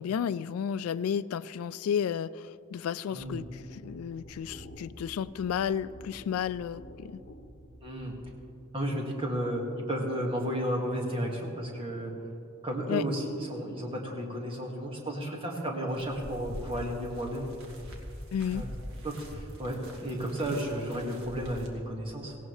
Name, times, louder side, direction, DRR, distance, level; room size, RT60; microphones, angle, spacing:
voice 1, 0.0-7.2 12.9-13.0 18.3-18.6, left 8 dB, 85° left, 15 dB, 0.3 m, -32 dB
voice 2, 3.1-3.4 7.8-8.1 8.7-12.1 12.6-17.5 18.5-18.7 19.0-22.4, equal, 25° right, -1 dB, 1.9 m, -33 dB
sound 1, 3.2-8.4, equal, 45° left, 1.5 m, -49 dB
sound 2, 15.9-21.7, equal, 75° right, 1.8 m, -43 dB
17.5 x 16.5 x 3.2 m, 2.7 s
head